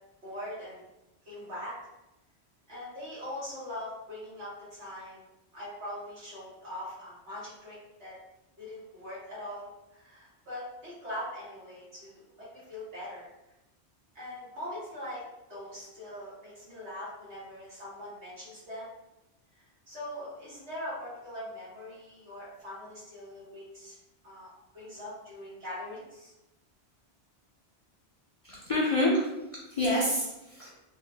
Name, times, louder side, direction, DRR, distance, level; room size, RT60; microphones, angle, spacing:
voice 1, 0.2-0.8 1.2-1.8 2.7-5.2 5.5-8.1 8.6-13.3 14.1-15.2 15.5-18.9 19.5-24.0 24.2-24.5 24.7-26.3, left 1 dB, 85° right, -8 dB, 1.6 m, -42 dB
voice 2, 28.4-30.7, left 1 dB, 50° left, -6 dB, 0.4 m, -28 dB
3.2 x 2.1 x 2.7 m, 0.93 s
omnidirectional pair, 1.1 m